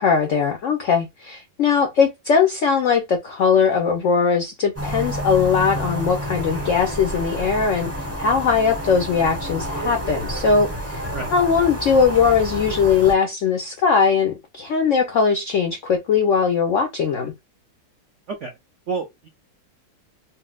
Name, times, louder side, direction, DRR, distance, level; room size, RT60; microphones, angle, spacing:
voice 1, 0.0-11.0 11.3-17.3, left 6 dB, 85° left, 0.6 m, -20 dB
sound 1, 4.8-13.2, equal, 20° right, 0.4 m, -29 dB
voice 2, 18.9-19.3, right 4 dB, 75° right, 0.6 m, -29 dB
4.2 x 2.0 x 2.3 m
omnidirectional pair, 2.1 m